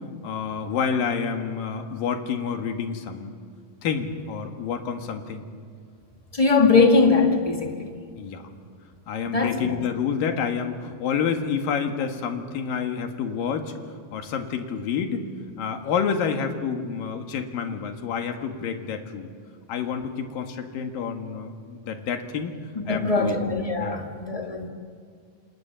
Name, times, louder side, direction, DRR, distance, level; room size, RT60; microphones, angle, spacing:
voice 1, 0.2-3.3 3.8-5.4 8.1-8.5 9.1-13.7 14.1-15.2 15.6-19.3 19.7-22.6 22.9-23.4 23.8-24.1, left 6 dB, 70° left, 3.4 m, -28 dB
voice 2, 6.3-7.9 9.2-9.8 22.9-24.7, left 4 dB, 15° left, 1.3 m, -21 dB
28.5 x 27.0 x 7.0 m
omnidirectional pair, 4.2 m